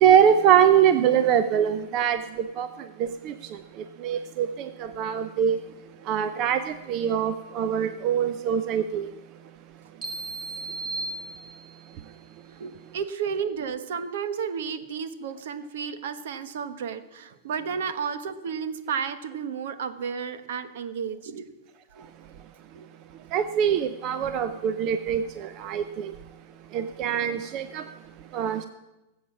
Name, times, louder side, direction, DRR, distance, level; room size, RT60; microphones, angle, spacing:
voice 1, 0.0-2.2 2.6-2.7 4.0-4.5 5.0-5.6 6.1-6.6 6.9-9.1 23.3-25.2 25.6-25.8 26.7-27.8 28.3-28.7, right 9 dB, 30° right, 0.5 m, -22 dB
sound 1, 10.0-12.0, right 2 dB, 15° right, 1.6 m, -35 dB
voice 2, 12.5-21.4 22.0-22.1 22.7-22.9, right 6 dB, 65° right, 1.2 m, -32 dB
18.5 x 8.0 x 7.1 m
supercardioid pair, 170°, 0 cm